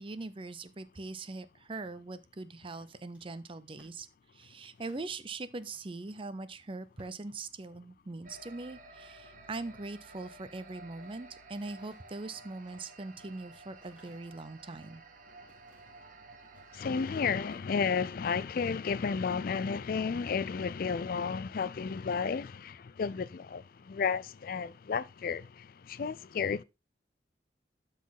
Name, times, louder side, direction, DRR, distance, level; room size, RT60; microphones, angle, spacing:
voice 1, 0.0-4.1 4.3-15.0, right 3 dB, 30° right, 0.6 m, -42 dB
sound 1, 2.6-5.1 5.7-5.9 6.2-6.3 6.8-7.7 8.2-8.7 10.5-11.2 11.6-15.0 15.5-16.0 16.4-17.2 17.4-17.7, right 1 dB, 5° right, 4.0 m, -66 dB
sound 2, 8.2-17.6, right 2 dB, 50° right, 1.1 m, -53 dB
voice 2, 16.7-26.6, left 5 dB, 55° left, 0.4 m, -32 dB
12.0 x 4.1 x 4.0 m
head